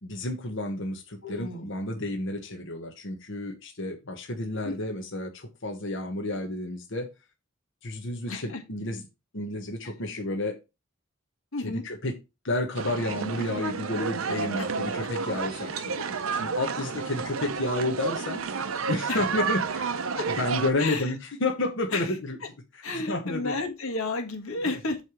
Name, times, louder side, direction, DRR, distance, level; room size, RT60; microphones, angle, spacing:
voice 1, 0.0-7.1 7.8-9.0 9.3-10.6 11.6-12.1 12.4-18.4 18.9-20.0 20.3-22.4 22.7-22.8 23.1-23.5 24.7-24.8, left 2 dB, 60° left, 2 dB, 1.2 m, -31 dB
voice 2, 1.2-1.7 4.6-4.7 8.3-8.6 11.5-11.8 14.6-14.7 19.1-19.2 20.1-20.3 20.8-21.1 21.9-22.1 22.8-25.0, left 3 dB, 85° left, 4 dB, 1.6 m, -32 dB
sound 1, 12.8-20.7, right 5 dB, 80° right, 0.7 m, -31 dB
8.1 x 3.3 x 6.1 m, 0.26 s
head